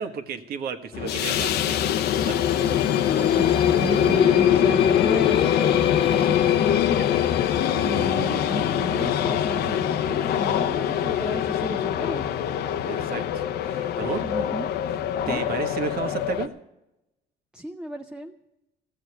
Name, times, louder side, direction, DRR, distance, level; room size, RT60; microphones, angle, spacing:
voice 1, 0.0-2.4 12.8-14.2 15.3-16.5, right 6 dB, 65° right, 6 dB, 1.5 m, -33 dB
sound 1, 0.9-16.5, left 10 dB, 70° left, 0.8 m, -23 dB
Singing, 3.0-8.2, left 7 dB, 30° left, 0.4 m, -27 dB
voice 2, 3.2-7.5 7.8-12.2 14.2-14.7 15.2-15.4 17.5-18.3, right 1 dB, 5° right, 5 dB, 0.7 m, -34 dB
15.5 x 7.4 x 9.7 m, 0.90 s
cardioid pair, 110°, 17 cm